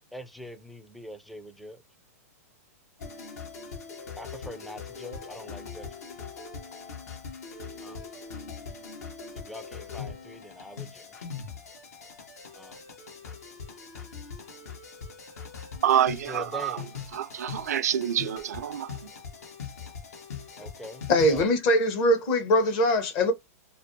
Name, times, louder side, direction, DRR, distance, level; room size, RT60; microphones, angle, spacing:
voice 1, 0.1-1.8 4.2-5.9 7.8-8.0 9.5-11.0 12.5-12.8 16.3-16.9 20.6-21.4, left 1 dB, ahead, 0.3 m, -43 dB
sound 1, 3.0-21.5, left 6 dB, 75° left, 0.9 m, -41 dB
voice 2, 15.8-16.8 17.1-18.9, right 10 dB, 80° right, 0.4 m, -27 dB
voice 3, 21.1-23.3, left 1 dB, 45° left, 0.8 m, -22 dB
2.5 x 2.1 x 2.5 m
hypercardioid pair, 115°, 9 cm